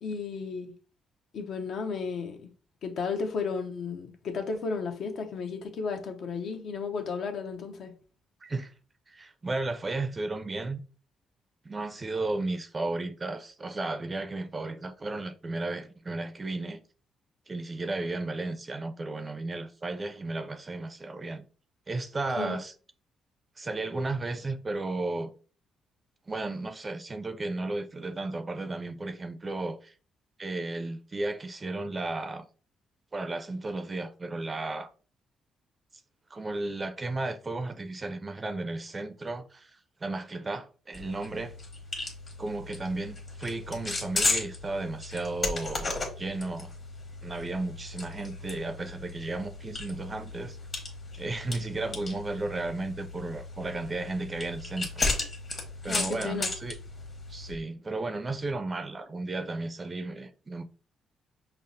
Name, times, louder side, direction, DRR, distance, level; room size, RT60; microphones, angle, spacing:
voice 1, 0.0-0.7 1.3-2.5 2.8-7.9 22.4-22.6 55.9-56.5, left 5 dB, 65° left, 0.6 m, -33 dB
voice 2, 8.4-8.7 9.1-10.8 11.6-16.8 17.5-21.4 21.9-22.7 23.6-25.3 26.3-29.9 30.4-32.4 33.1-34.9 36.3-41.5 42.4-45.9 46.2-46.7 47.2-50.6 51.2-55.1 55.8-56.8 57.3-60.6, right 2 dB, 30° right, 0.4 m, -34 dB
sound 1, 40.9-57.5, left 3 dB, 40° left, 1.2 m, -35 dB
5.5 x 2.0 x 2.6 m
cardioid pair, 90°, 0 cm